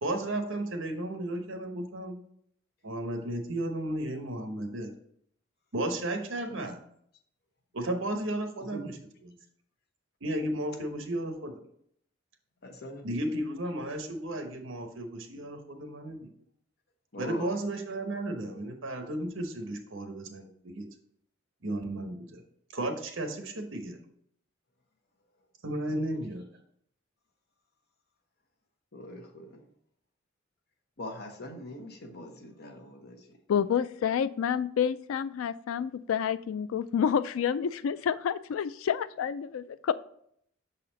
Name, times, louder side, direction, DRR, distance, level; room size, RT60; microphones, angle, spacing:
voice 1, 0.0-2.2 2.8-4.9 5.7-6.8 7.7-9.4 10.2-11.6 13.0-16.3 17.2-20.9 21.6-22.4 22.7-24.0 25.6-26.4, right 1 dB, 70° right, 5 dB, 1.0 m, -34 dB
voice 2, 12.6-13.0 17.1-17.5 28.9-29.6 31.0-33.2, left 1 dB, 55° left, 4 dB, 1.0 m, -42 dB
voice 3, 33.5-39.9, left 8 dB, 80° left, 15 dB, 0.3 m, -29 dB
6.4 x 4.2 x 3.9 m, 0.69 s
head